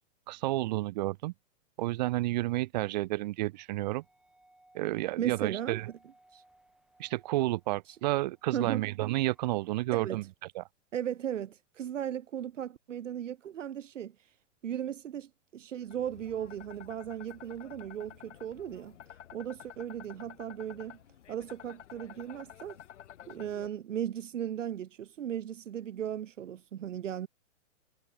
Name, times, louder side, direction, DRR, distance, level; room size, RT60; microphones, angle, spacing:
voice 1, 0.3-1.3 1.8-4.0 4.7-5.9 7.0-10.2 10.5-10.6, right 18 dB, 35° right, 1.3 m, -31 dB
sound 1, 3.5-9.8, right 1 dB, ahead, 6.1 m, -65 dB
voice 2, 5.2-5.8 6.3-6.4 7.9-8.0 8.5-8.8 9.9-10.3 10.9-14.3 14.6-19.0 19.3-21.0 21.3-22.8 23.3-27.3, right 10 dB, 80° right, 2.7 m, -36 dB
sound 2, 15.9-23.7, left 11 dB, 70° left, 2.2 m, -51 dB
hypercardioid pair, 165°, 37 cm